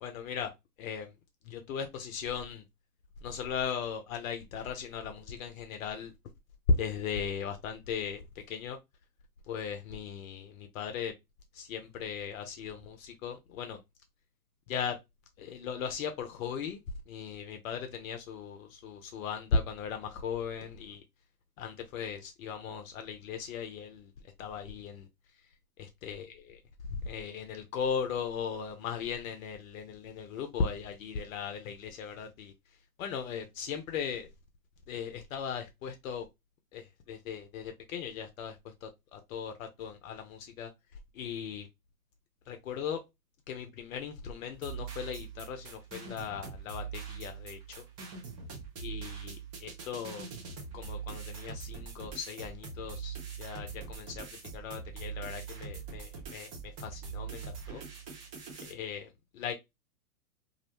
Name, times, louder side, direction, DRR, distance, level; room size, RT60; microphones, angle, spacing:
voice 1, 0.0-0.5 0.8-1.1 1.4-2.6 3.2-6.1 6.8-8.8 9.5-11.1 11.5-13.8 14.7-15.0 15.4-16.8 17.1-21.0 21.6-24.1 24.4-25.1 25.8-26.6 26.9-32.5 33.0-34.3 34.9-36.3 36.7-40.7 41.1-41.7 42.5-43.0 43.5-47.8 48.8-50.3 50.7-54.3 54.5-57.8 58.6-59.5, left 6 dB, 60° left, 0.6 m, -38 dB
sound 1, 44.5-58.7, right 6 dB, 15° right, 0.3 m, -43 dB
2.5 x 2.1 x 2.8 m
hypercardioid pair, 115°, 47 cm